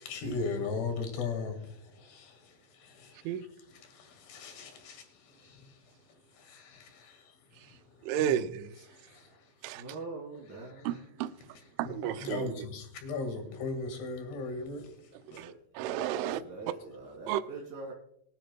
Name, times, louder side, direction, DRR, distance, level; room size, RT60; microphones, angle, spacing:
voice 1, 0.0-3.4 3.7-8.3 8.9-9.5 10.6-10.9 12.0-15.4, left 4 dB, 65° left, 3.8 m, -39 dB
voice 2, 8.0-8.8 9.6-9.8 10.8-11.3 11.8-12.7 15.3-16.4 17.3-17.4, right 10 dB, 85° right, 3.0 m, -32 dB
voice 3, 9.6-11.0 15.3-15.5 16.1-17.9, right 3 dB, 30° right, 2.1 m, -44 dB
23.5 x 10.0 x 2.3 m
omnidirectional pair, 5.6 m